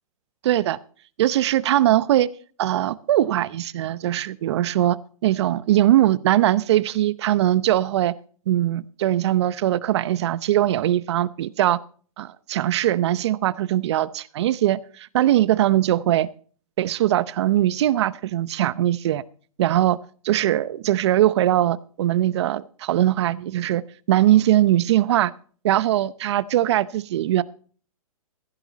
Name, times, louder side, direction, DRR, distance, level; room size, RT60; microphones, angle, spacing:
voice 1, 0.4-0.8 1.2-2.3 2.6-8.1 8.5-11.8 12.2-16.3 16.8-19.2 19.6-20.0 20.2-23.8 24.1-25.3 25.6-27.4, right 13 dB, 50° right, 19 dB, 0.8 m, -21 dB
15.5 x 10.5 x 4.1 m, 0.43 s
hypercardioid pair, 150°, 19 cm